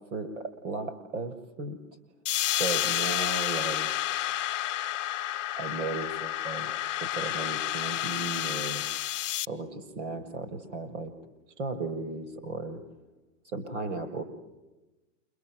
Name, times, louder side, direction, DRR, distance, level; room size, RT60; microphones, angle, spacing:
voice 1, 0.1-1.8 2.6-3.9 5.6-6.7 7.0-8.9 9.5-11.1 11.6-12.8 13.5-14.2, right 3 dB, 70° right, 8 dB, 7.1 m, -35 dB
sound 1, 2.3-9.5, left 13 dB, 75° left, 0.8 m, -30 dB
29.0 x 25.0 x 8.0 m, 1.1 s
supercardioid pair, 180°, 37 cm